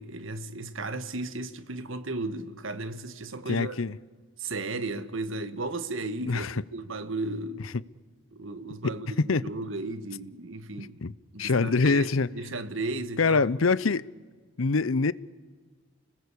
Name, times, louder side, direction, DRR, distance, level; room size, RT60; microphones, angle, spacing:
voice 1, 0.0-3.8 4.4-7.7 8.3-11.0 11.3-12.1 12.3-13.5, right 2 dB, 75° right, 1.5 m, -35 dB
voice 2, 3.5-4.0 6.2-6.6 9.3-9.4 10.8-11.1 11.4-12.5 13.2-14.1 14.6-15.1, left 4 dB, 90° left, 0.7 m, -25 dB
30.0 x 19.5 x 8.5 m
head